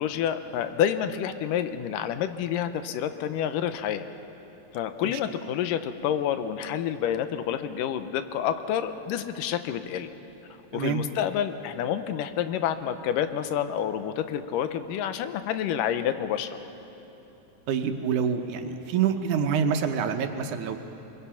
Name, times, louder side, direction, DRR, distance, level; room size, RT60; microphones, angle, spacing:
voice 1, 0.0-4.1 4.7-10.1 10.7-16.6, left 9 dB, 90° left, 10 dB, 2.4 m, -28 dB
voice 2, 17.7-20.8, right 7 dB, 75° right, 6 dB, 2.3 m, -26 dB
24.5 x 22.5 x 5.8 m, 3.0 s
omnidirectional pair, 3.7 m